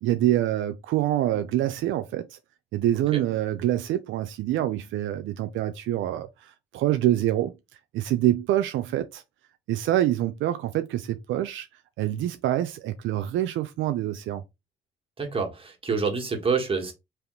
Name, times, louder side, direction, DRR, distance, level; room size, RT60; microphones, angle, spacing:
voice 1, 0.0-2.4 2.7-7.5 7.9-9.2 9.7-11.7 12.0-14.4, right 13 dB, 80° right, 0.4 m, -26 dB
voice 2, 15.2-16.9, right 5 dB, 25° right, 1.4 m, -27 dB
3.4 x 2.9 x 3.7 m
cardioid pair, 90°, 20 cm